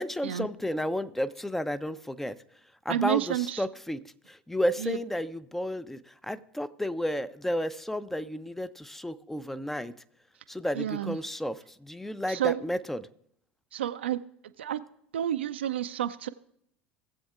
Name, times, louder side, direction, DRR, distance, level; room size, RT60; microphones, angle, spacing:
voice 1, 0.0-2.4 2.8-4.0 4.3-9.9 10.5-13.1, equal, 5° left, 16 dB, 0.4 m, -32 dB
voice 2, 2.9-3.6 4.8-5.0 10.7-11.2 12.3-12.6 13.7-14.2 14.6-14.8 15.1-16.3, right 11 dB, 70° right, 10 dB, 0.3 m, -30 dB
18.5 x 7.7 x 2.4 m, 0.71 s
figure-of-eight pair, 75°, 6 cm